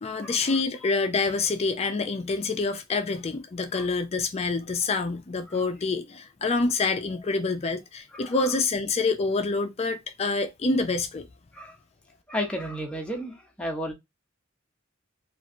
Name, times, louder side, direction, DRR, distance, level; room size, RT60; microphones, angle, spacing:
voice 1, 0.0-11.3, left 3 dB, 30° left, 0.4 m, -27 dB
voice 2, 8.1-8.6 11.5-11.8 12.3-13.9, equal, 5° left, 0.7 m, -33 dB
3.1 x 2.4 x 2.5 m
head